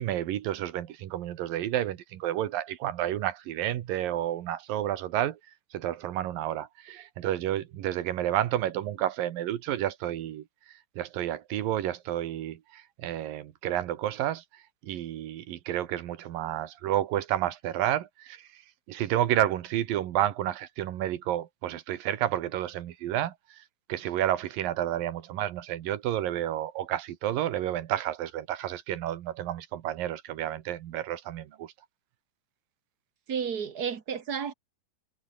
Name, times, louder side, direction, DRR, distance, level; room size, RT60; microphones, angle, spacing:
voice 1, 0.0-5.4 5.7-10.4 11.0-14.4 14.8-18.5 18.9-23.6 23.9-31.7, right 12 dB, 75° right, 3.1 m, -30 dB
voice 2, 33.3-34.5, right 7 dB, 50° right, 1.1 m, -32 dB
omnidirectional pair, 4.1 m